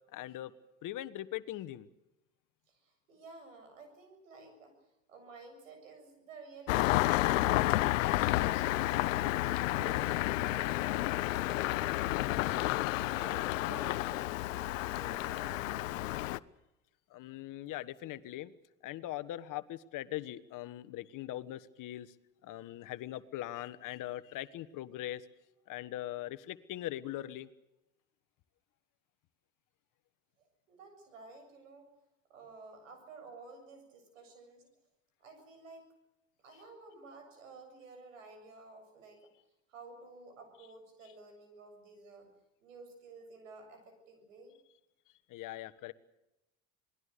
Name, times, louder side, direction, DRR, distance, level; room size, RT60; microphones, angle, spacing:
voice 1, 0.1-0.5 0.8-1.9 17.1-18.5 18.8-22.1 22.4-25.3 25.7-27.5 45.3-45.9, left 14 dB, 55° left, 14 dB, 1.5 m, -41 dB
voice 2, 2.7-4.8 5.1-8.0 8.3-9.3 9.8-12.0 12.4-16.1 30.4-31.9 32.3-34.7 35.2-35.9 36.4-39.2 39.7-42.3 42.6-44.6, right 3 dB, 90° right, 6 dB, 7.3 m, -52 dB
Engine starting, 6.7-16.4, left 18 dB, 80° left, 0.8 m, -31 dB
27.0 x 19.5 x 6.8 m, 0.91 s
hypercardioid pair, 80°, 38 cm